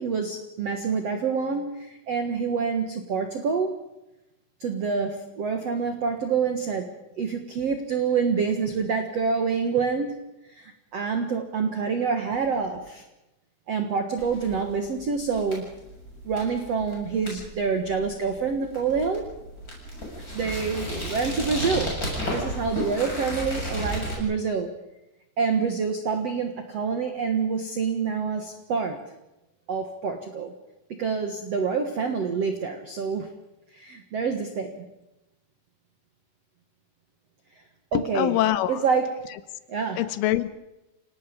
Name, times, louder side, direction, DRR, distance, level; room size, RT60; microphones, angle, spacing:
voice 1, 0.0-3.8 4.6-6.9 7.2-10.1 10.5-13.0 13.7-15.7 16.2-19.3 20.3-22.0 22.3-24.7 25.4-29.0 29.7-30.5 30.9-33.3 33.7-34.8 37.9-38.3 38.7-39.1 39.7-40.0, right 5 dB, 80° right, 6 dB, 1.4 m, -27 dB
sound 1, 14.2-24.2, equal, 15° left, 7.2 m, -34 dB
voice 2, 37.9-38.9 39.3-39.4 40.0-40.5, left 13 dB, 90° left, 13 dB, 3.6 m, -24 dB
29.5 x 19.0 x 5.3 m, 0.96 s
omnidirectional pair, 5.5 m